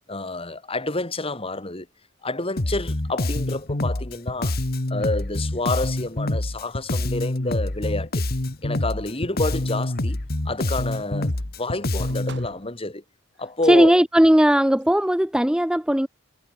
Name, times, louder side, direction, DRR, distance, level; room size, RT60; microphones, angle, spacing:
voice 1, 0.1-1.9 2.2-4.6 4.9-8.2 8.6-11.3 11.6-13.0 13.4-14.0, left 2 dB, 25° left, 3.0 m, -29 dB
Bass guitar, 2.6-12.5, left 1 dB, 45° left, 1.5 m, -26 dB
sound 1, 9.6-10.2 10.9-12.9 14.5-15.0, right 3 dB, 55° right, 7.3 m, -47 dB
voice 2, 13.7-16.1, equal, 5° right, 0.5 m, -17 dB
head